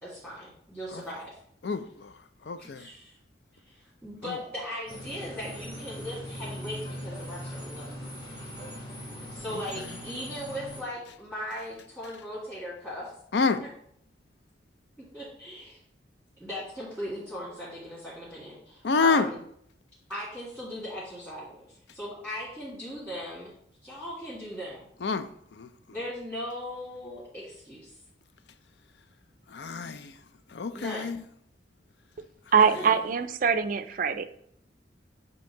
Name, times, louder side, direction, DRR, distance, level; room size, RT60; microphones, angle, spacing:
voice 1, 0.0-1.3 2.6-3.1 3.6-8.0 9.3-13.1 13.6-13.7 15.1-15.8 16.4-19.4 20.1-23.5 23.8-24.9 25.9-27.9 30.7-31.1 32.7-33.0, equal, 5° left, -10 dB, 1.8 m, -38 dB
voice 2, 1.6-2.1 2.5-2.9 4.3-4.4 9.5-9.6 13.3-13.6 18.8-19.3 25.0-25.3 25.6-25.7 29.5-30.1 30.5-31.2, left 4 dB, 65° left, 11 dB, 0.4 m, -27 dB
sound 1, 4.9-10.8, equal, 25° left, 1.5 m, -40 dB
voice 3, 32.5-34.2, right 6 dB, 45° right, 11 dB, 0.4 m, -23 dB
7.9 x 2.8 x 4.5 m, 0.68 s
head